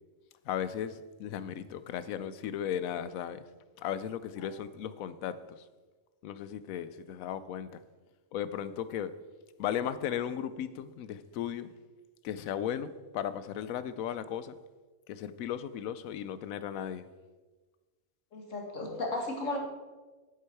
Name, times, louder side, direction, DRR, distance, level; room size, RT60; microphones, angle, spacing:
voice 1, 0.5-3.4 3.8-5.3 6.2-7.8 8.3-9.1 9.6-11.7 12.2-14.5 15.1-17.0, left 9 dB, 85° left, 14 dB, 1.0 m, -36 dB
voice 2, 18.3-19.6, left 2 dB, 65° left, 0 dB, 2.1 m, -35 dB
8.2 x 8.0 x 4.6 m, 1.3 s
omnidirectional pair, 1.4 m